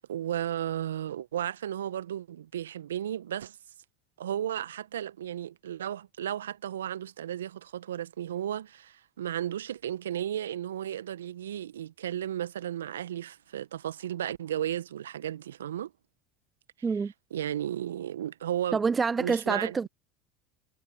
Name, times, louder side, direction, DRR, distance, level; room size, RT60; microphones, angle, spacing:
voice 1, 0.0-3.6 4.2-15.9 17.3-18.8 19.2-19.7, right 11 dB, 80° right, 1.4 m, -34 dB
voice 2, 18.7-19.9, right 5 dB, 25° right, 0.5 m, -27 dB
figure-of-eight pair, 70°, 0 cm